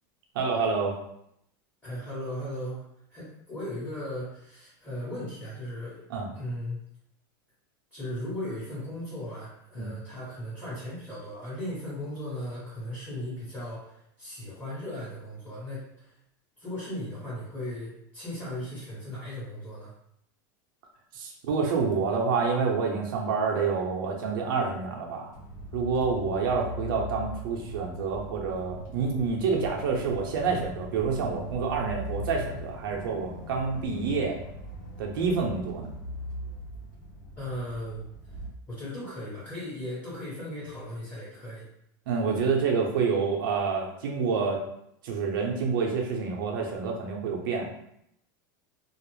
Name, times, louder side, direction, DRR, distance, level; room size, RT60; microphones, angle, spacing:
voice 1, 0.3-1.0 6.1-6.3 9.8-9.9 21.1-25.3 25.7-34.4 35.0-35.9 42.1-44.6 45.0-47.7, right 5 dB, 75° right, 0 dB, 0.7 m, -28 dB
voice 2, 1.8-2.8 3.1-6.0 6.3-6.8 7.9-16.1 16.6-19.9 26.0-26.1 37.4-38.1 38.7-41.7, left 1 dB, 15° left, -11 dB, 1.1 m, -37 dB
sound 1, 25.3-38.5, equal, 70° left, 0.8 m, -40 dB
2.4 x 2.0 x 3.1 m, 0.75 s
supercardioid pair, 140°, 11 cm